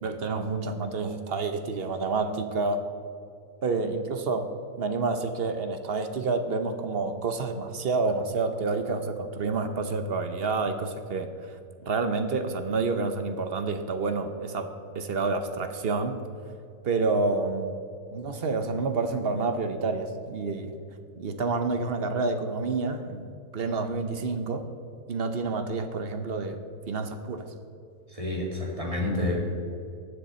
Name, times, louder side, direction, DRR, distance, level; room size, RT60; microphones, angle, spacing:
voice 1, 0.0-2.8 3.6-4.5 4.8-16.2 16.8-17.7 18.1-20.7 21.2-23.3 23.5-24.7 25.1-26.6 26.9-27.5, right 3 dB, 50° right, 7 dB, 0.8 m, -29 dB
voice 2, 28.1-29.4, left 2 dB, 20° right, -2 dB, 2.1 m, -29 dB
19.0 x 6.6 x 4.3 m, 2.5 s
omnidirectional pair, 1.7 m